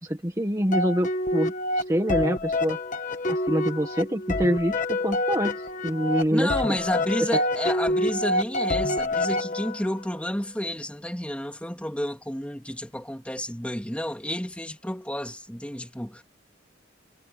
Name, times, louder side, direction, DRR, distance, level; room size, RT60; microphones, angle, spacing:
voice 1, 0.0-2.8 3.3-6.8, equal, 15° right, 1.7 m, -26 dB
sound 1, 0.7-10.0, left 1 dB, 40° left, 1.5 m, -27 dB
voice 2, 6.3-16.2, left 1 dB, 5° left, 3.3 m, -30 dB
head